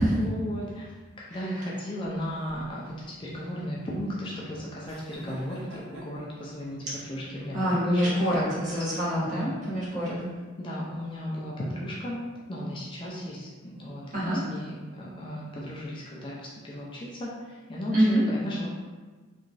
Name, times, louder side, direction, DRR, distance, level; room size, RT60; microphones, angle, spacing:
voice 1, 0.2-8.6 9.2-9.5 10.6-12.2 12.5-18.7, equal, 25° left, -5 dB, 0.3 m, -35 dB
sound 1, 2.0-7.6, right 1 dB, 80° right, 0.8 m, -48 dB
voice 2, 7.5-10.3 14.1-14.4 17.9-18.2, right 1 dB, 40° right, -9 dB, 1.0 m, -25 dB
2.9 x 2.3 x 2.5 m, 1.4 s
head